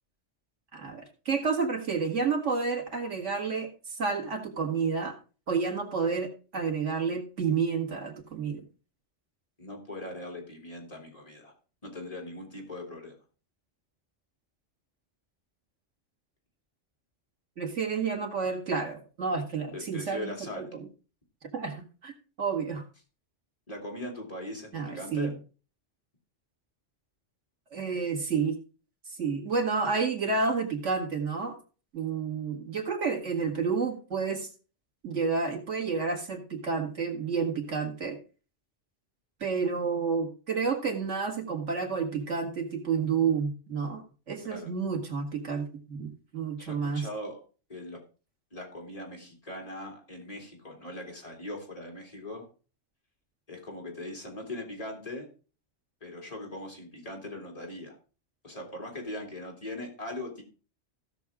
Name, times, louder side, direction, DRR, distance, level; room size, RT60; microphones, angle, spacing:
voice 1, 0.7-5.1 5.5-8.6 17.6-20.3 20.6-20.9 21.5-22.1 22.4-22.8 24.7-25.3 27.7-28.6 29.2-31.5 31.9-34.5 35.0-38.2 39.4-44.0 44.3-47.1, right 5 dB, 90° right, 3 dB, 2.3 m, -30 dB
voice 2, 9.6-11.5 11.8-13.2 19.7-20.7 23.7-25.3 44.5-44.7 46.6-47.4 47.7-48.0 48.5-52.5 53.5-55.3 56.0-58.0 58.4-60.4, left 1 dB, 30° left, 0 dB, 2.9 m, -40 dB
16.0 x 6.3 x 3.6 m, 0.36 s
omnidirectional pair, 1.2 m